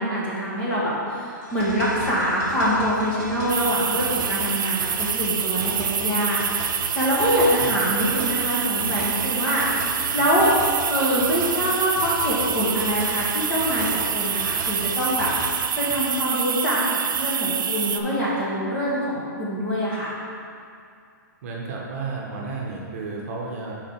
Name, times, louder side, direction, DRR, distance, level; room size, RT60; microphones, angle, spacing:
voice 1, 0.0-6.4 6.9-10.5 10.9-15.3 15.8-16.8 17.1-20.1, equal, 15° left, -8 dB, 1.2 m, -24 dB
sound 1, 1.4-15.5, right 1 dB, 25° right, 1.3 m, -36 dB
sound 2, 3.5-18.0, right 8 dB, 85° right, 0.5 m, -26 dB
voice 2, 21.4-23.7, right 4 dB, 45° right, -2 dB, 1.1 m, -32 dB
4.9 x 4.4 x 5.8 m, 2.4 s
hypercardioid pair, 165°, 11 cm